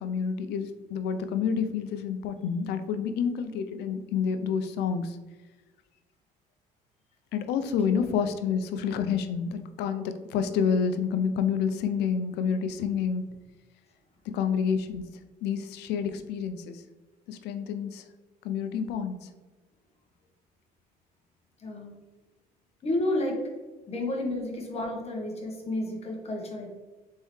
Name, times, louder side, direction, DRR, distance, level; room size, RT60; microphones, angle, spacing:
voice 1, 0.0-5.2 7.3-13.2 14.3-15.1 15.4-16.8 17.3-18.0 18.4-19.3, left 6 dB, 80° left, 9 dB, 0.5 m, -28 dB
voice 2, 21.6-22.0 22.8-23.4 23.9-26.7, left 1 dB, 40° left, 0 dB, 1.2 m, -31 dB
4.1 x 3.7 x 3.1 m, 1.2 s
cardioid pair, 110°, 17 cm